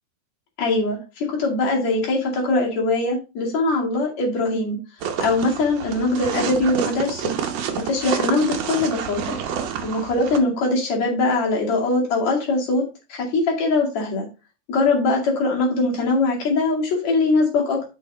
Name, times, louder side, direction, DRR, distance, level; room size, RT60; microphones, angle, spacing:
voice 1, 0.6-4.8 5.2-7.3 7.7-9.4 9.8-14.3 14.7-17.8, left 2 dB, 65° left, -1 dB, 3.5 m, -22 dB
sound 1, 5.0-10.4, right 8 dB, 65° right, 2.0 m, -28 dB
6.2 x 6.2 x 4.2 m, 0.29 s
omnidirectional pair, 3.5 m